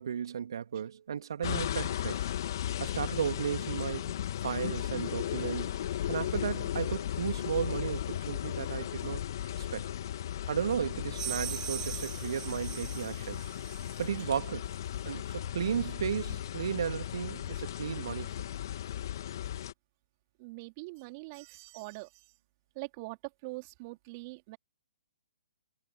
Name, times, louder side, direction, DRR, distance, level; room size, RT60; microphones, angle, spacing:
voice 1, 0.0-2.3 2.8-4.2 4.4-5.8 6.1-9.2 9.6-9.9 10.5-13.4 14.0-14.7 15.0-18.3, right 8 dB, 60° right, 2.5 m, -34 dB
sound 1, 1.4-19.7, left 11 dB, 50° left, 2.1 m, -36 dB
sound 2, 11.1-14.1, right 11 dB, 20° right, 5.1 m, -41 dB
voice 2, 20.4-22.3 22.8-24.6, right 26 dB, 35° right, 3.7 m, -43 dB
figure-of-eight pair, 125°, 3 cm